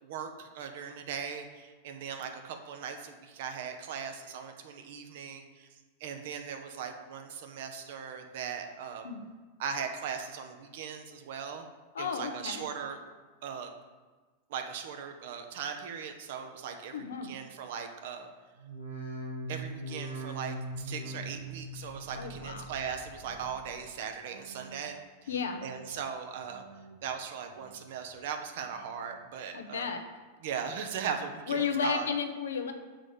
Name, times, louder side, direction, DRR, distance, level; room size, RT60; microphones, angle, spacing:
voice 1, 0.0-9.0 9.6-11.7 12.0-13.0 13.4-13.7 14.5-18.3 19.5-25.0 25.6-26.6 27.0-29.9 30.4-32.1, right 7 dB, 55° right, 5 dB, 0.9 m, -39 dB
voice 2, 11.9-12.7 16.9-17.3 22.1-22.7 25.3-25.6 29.5-30.0 31.5-32.7, left 6 dB, 65° left, 6 dB, 0.8 m, -33 dB
sound 1, 18.6-23.9 24.2-24.8 25.3-26.0 26.4-27.1 27.5-28.1 28.6-29.2 29.7-29.8, right 1 dB, 85° right, 2.5 m, -42 dB
6.3 x 4.9 x 6.7 m, 1.3 s
figure-of-eight pair, 90°, 0 cm